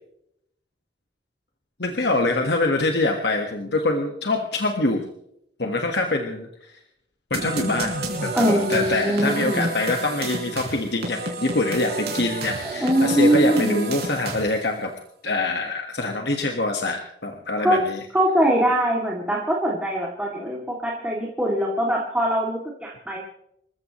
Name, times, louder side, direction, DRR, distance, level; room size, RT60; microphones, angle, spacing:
voice 1, 1.8-5.1 5.6-6.7 7.3-7.9 8.2-14.9 15.2-18.0, left 2 dB, 60° left, 3 dB, 1.6 m, -24 dB
sound 1, 7.3-14.7, right 2 dB, 55° right, 4.6 m, -30 dB
voice 2, 8.3-9.7 12.6-13.8 17.6-17.8 18.1-23.2, right 1 dB, 5° right, -4 dB, 2.6 m, -22 dB
27.5 x 15.0 x 3.2 m, 0.76 s
head